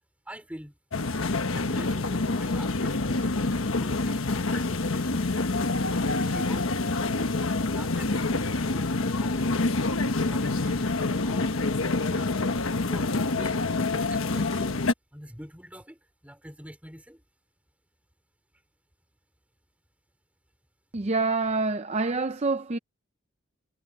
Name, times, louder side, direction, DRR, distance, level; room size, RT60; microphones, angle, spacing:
voice 1, 0.3-0.8 1.5-5.3 6.1-7.3 7.7-9.6 10.2-12.4 12.9-14.8 15.1-17.2, equal, 5° right, 3.5 m, -45 dB
sound 1, 0.9-14.9, left 3 dB, 75° left, 1.2 m, -27 dB
voice 2, 20.9-22.8, right 3 dB, 30° right, 0.5 m, -26 dB
head